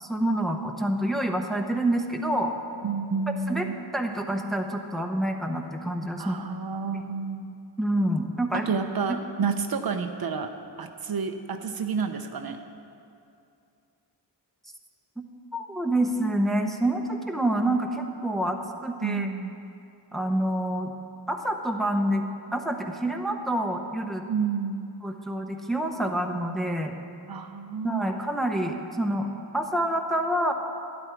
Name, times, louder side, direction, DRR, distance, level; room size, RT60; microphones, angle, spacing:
voice 1, 0.0-2.5 3.5-3.6 3.9-6.4 7.8-8.7 9.1-9.2 15.2-15.3 15.5-19.3 20.1-20.9 21.3-22.2 22.5-24.2 25.0-26.9 27.8-29.3 29.5-30.5, right 1 dB, ahead, 3 dB, 0.8 m, -27 dB
voice 2, 2.8-3.8 6.2-7.5 8.5-10.5 10.8-12.6 19.0-19.7 24.3-24.9 27.3-28.1, right 5 dB, 55° right, 6 dB, 0.7 m, -30 dB
12.0 x 10.5 x 4.5 m, 2.6 s
wide cardioid pair, 100°, 42 cm